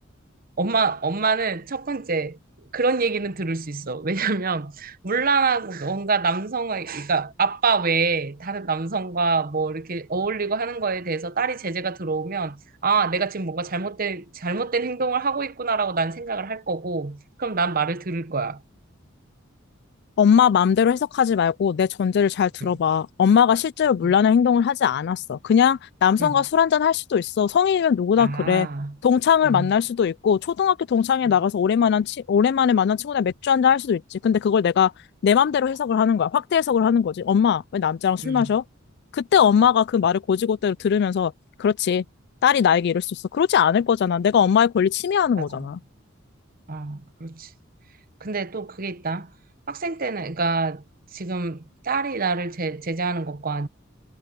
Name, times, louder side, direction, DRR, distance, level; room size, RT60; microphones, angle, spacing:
voice 1, 0.6-2.4 2.7-18.6 22.6-22.7 24.0-24.1 26.2-26.4 28.2-29.0 29.4-29.7 31.2-31.3 38.2-38.5 45.4-45.7 46.7-47.5 48.2-49.3 49.7-50.8 51.1-53.7, right 4 dB, 45° right, 1.0 m, -26 dB
voice 2, 20.2-28.7 29.0-34.9 35.2-38.6 39.1-41.3 41.6-42.0 42.4-45.8, left 7 dB, 55° left, 0.3 m, -20 dB
head